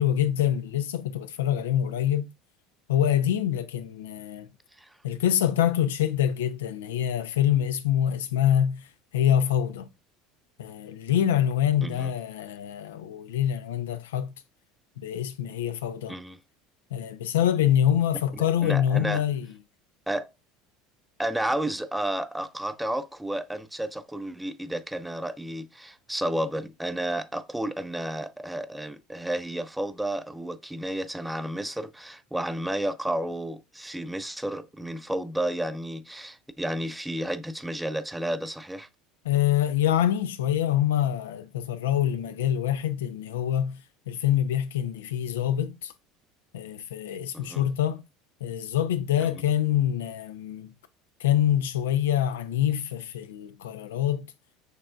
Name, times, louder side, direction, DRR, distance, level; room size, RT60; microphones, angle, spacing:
voice 1, 0.0-2.3 2.9-4.5 5.0-8.8 9.1-9.9 10.6-14.3 15.0-16.2 16.9-19.5 39.2-43.8 44.1-45.9 46.5-48.0 48.4-50.7 51.2-54.2, left 10 dB, 75° left, 0.4 m, -25 dB
voice 2, 11.8-12.1 16.1-16.4 18.4-19.2 20.1-20.3 21.2-38.9 47.3-47.7 49.2-49.4, right 1 dB, 5° right, 0.4 m, -32 dB
6.3 x 3.3 x 2.4 m
figure-of-eight pair, 70°, 0 cm